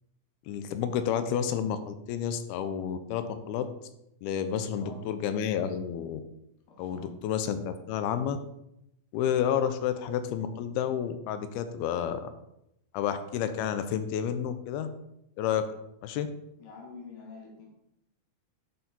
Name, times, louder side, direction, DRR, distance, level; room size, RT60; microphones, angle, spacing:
voice 1, 0.5-3.7 4.2-6.2 6.8-8.4 9.1-12.2 12.9-14.9 15.4-15.7 16.0-16.3, left 8 dB, 85° left, 10 dB, 2.5 m, -30 dB
voice 2, 4.6-5.1 6.7-7.1 16.6-17.7, left 4 dB, 65° left, -3 dB, 3.3 m, -47 dB
10.0 x 4.4 x 4.1 m, 0.82 s
omnidirectional pair, 4.5 m